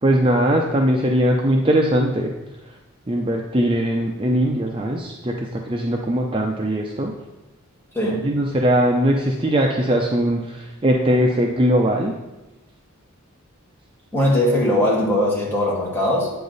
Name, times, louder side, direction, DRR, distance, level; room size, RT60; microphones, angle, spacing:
voice 1, 0.0-2.3 3.1-7.1 8.2-12.1, equal, 25° right, 0 dB, 0.6 m, -20 dB
voice 2, 7.9-8.3 14.1-16.3, left 1 dB, 10° left, -5 dB, 2.0 m, -20 dB
8.6 x 6.8 x 4.0 m, 1.0 s
head